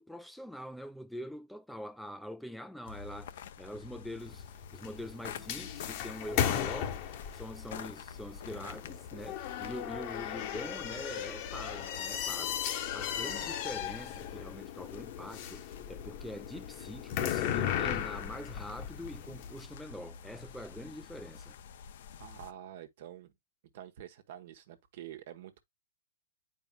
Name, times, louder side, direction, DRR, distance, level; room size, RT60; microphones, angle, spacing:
voice 1, 0.0-4.5 4.7-7.0 7.3-21.6, equal, ahead, 0.4 m, -44 dB
sound 1, 2.8-22.5, left 7 dB, 65° left, 0.7 m, -49 dB
sound 2, 4.2-19.6, left 10 dB, 45° left, 1.0 m, -36 dB
voice 2, 22.2-23.3 23.7-25.6, right 11 dB, 60° right, 1.1 m, -47 dB
9.1 x 4.7 x 2.2 m
hypercardioid pair, 130°, 0 cm